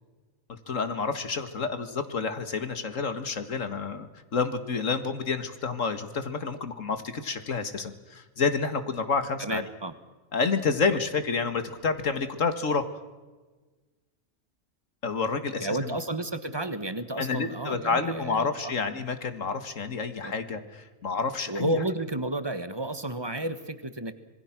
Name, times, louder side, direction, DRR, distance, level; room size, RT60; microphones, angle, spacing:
voice 1, 0.5-9.6 10.3-12.8 15.0-16.0 17.2-21.8, left 5 dB, 70° left, 10 dB, 2.0 m, -29 dB
voice 2, 9.4-9.9 15.6-18.7 20.2-20.3 21.5-24.1, right 1 dB, 20° right, 11 dB, 1.3 m, -31 dB
27.0 x 21.0 x 6.1 m, 1.3 s
omnidirectional pair, 1.4 m